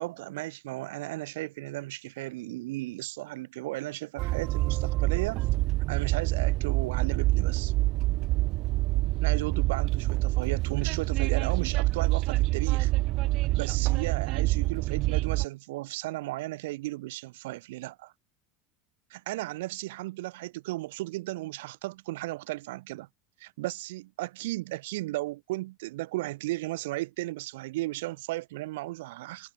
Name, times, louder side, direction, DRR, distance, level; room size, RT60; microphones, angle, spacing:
voice 1, 0.0-5.5 5.9-7.7 9.2-12.9 13.5-18.1 19.1-23.1 23.4-29.5, right 19 dB, 75° right, 3.8 m, -35 dB
Train, 4.2-15.4, right 19 dB, 45° right, 0.4 m, -26 dB
supercardioid pair, 160°, 0 cm